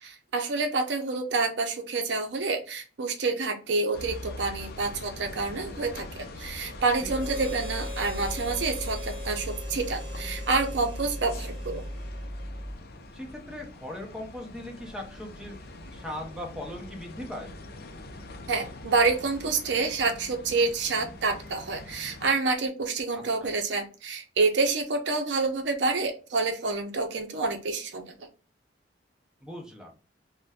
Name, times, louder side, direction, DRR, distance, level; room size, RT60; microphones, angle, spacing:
voice 1, 0.0-11.8 18.5-28.1, right 3 dB, 70° right, 5 dB, 0.6 m, -28 dB
sound 1, 3.9-22.3, left 2 dB, 55° left, 0.5 m, -43 dB
sound 2, 7.0-12.7, equal, 15° left, 1.1 m, -37 dB
Harmonica, 7.2-12.7, left 3 dB, 50° right, 1.2 m, -43 dB
voice 2, 13.1-15.6 15.9-17.5 23.4-23.5 29.4-29.9, left 1 dB, 5° right, 0 dB, 0.7 m, -39 dB
2.5 x 2.1 x 3.4 m, 0.34 s
head